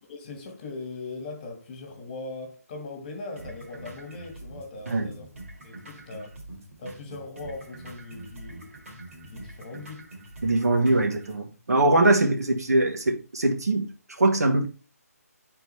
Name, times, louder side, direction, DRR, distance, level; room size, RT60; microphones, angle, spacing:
voice 1, 0.1-5.3 5.6-6.4 6.8-8.8 9.2-10.1, left 3 dB, 30° left, 1.6 m, -40 dB
sound 1, 3.4-11.4, right 2 dB, 55° right, 1.9 m, -44 dB
voice 2, 10.4-13.9 14.2-14.7, right 2 dB, 75° right, 1.3 m, -22 dB
8.1 x 3.8 x 3.2 m
figure-of-eight pair, 155°, 9 cm